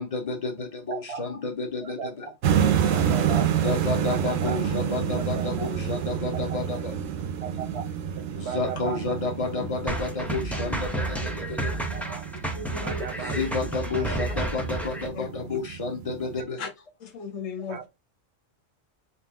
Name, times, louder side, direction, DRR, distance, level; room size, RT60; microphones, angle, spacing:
voice 1, 0.0-2.3 3.6-7.0 8.4-11.9 13.2-16.6, left 3 dB, 35° left, 0.7 m, -31 dB
sound 1, 2.4-16.4, right 8 dB, 90° right, 1.0 m, -29 dB
voice 2, 2.9-3.5 3.9-4.6 5.4-5.7 7.4-7.8 8.2-9.0 11.9-12.2 12.7-13.3 13.8-14.2 16.6-16.7 17.7-17.8, right 6 dB, 65° right, 0.8 m, -36 dB
sound 2, 9.9-15.1, right 1 dB, ahead, 0.4 m, -31 dB
voice 3, 12.5-13.1 15.2-15.3 16.6-16.7 17.0-17.9, left 5 dB, 85° left, 1.1 m, -36 dB
4.3 x 2.5 x 3.5 m
omnidirectional pair, 1.3 m